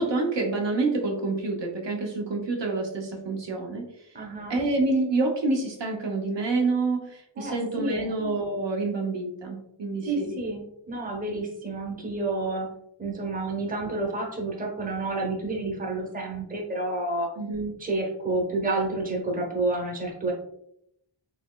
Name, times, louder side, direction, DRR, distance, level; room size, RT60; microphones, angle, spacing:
voice 1, 0.0-3.9 4.5-10.3 17.4-17.7, right 3 dB, 60° right, 1 dB, 0.7 m, -27 dB
voice 2, 4.1-4.6 7.4-8.1 10.0-10.6 10.9-12.7 13.0-17.3 17.8-20.3, right 2 dB, 15° right, -1 dB, 0.7 m, -29 dB
4.1 x 2.9 x 2.2 m, 0.76 s
wide cardioid pair, 130°, 49 cm